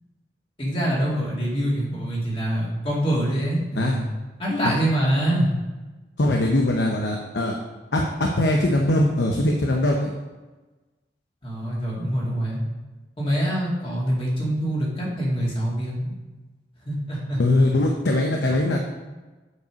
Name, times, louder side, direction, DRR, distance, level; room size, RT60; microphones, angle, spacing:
voice 1, 0.6-4.1 4.4-5.5 11.4-12.6 13.2-16.1 16.8-17.4, right 1 dB, 30° left, -5 dB, 2.4 m, -25 dB
voice 2, 6.2-7.6 7.9-10.1 17.4-18.9, left 1 dB, 80° left, 1 dB, 0.8 m, -21 dB
8.0 x 5.4 x 5.2 m, 1.2 s
head